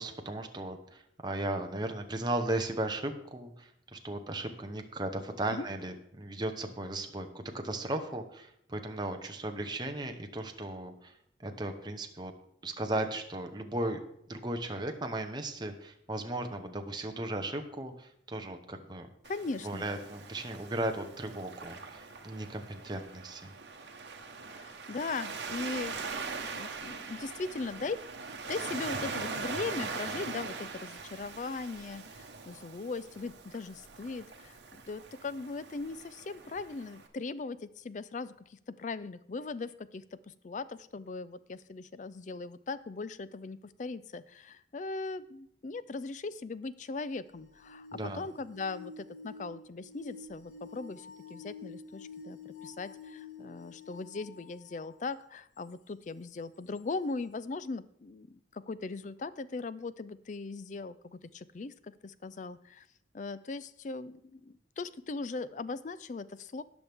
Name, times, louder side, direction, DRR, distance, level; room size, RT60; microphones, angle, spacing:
voice 1, 0.0-11.1 11.4-12.3 12.6-14.0 14.3-19.1 19.6-23.5 47.9-48.2, right 1 dB, 25° right, 5 dB, 0.8 m, -36 dB
Waves surf, 19.2-37.1, right 4 dB, 75° right, 1.2 m, -42 dB
voice 2, 19.3-19.8 24.5-62.9 63.1-66.6, left 3 dB, 40° left, 15 dB, 0.4 m, -39 dB
sound 1, 47.3-54.9 55.6-55.7 56.8-56.9, left 4 dB, 80° left, 1.3 m, -49 dB
18.0 x 6.0 x 3.5 m, 0.72 s
head